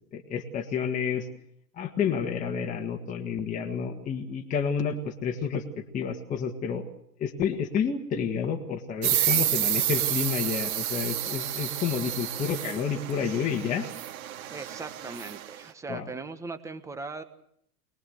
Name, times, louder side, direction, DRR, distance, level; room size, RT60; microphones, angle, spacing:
voice 1, 0.1-1.3 1.7-5.6 5.9-6.8 7.2-13.9 15.9-16.1, left 7 dB, 15° left, 2 dB, 1.7 m, -30 dB
sound 1, 9.0-15.5, right 11 dB, 60° right, 2.9 m, -30 dB
voice 2, 14.5-17.2, right 3 dB, 5° right, 9 dB, 1.2 m, -39 dB
23.0 x 20.5 x 8.0 m, 0.72 s
hypercardioid pair, 150°, 48 cm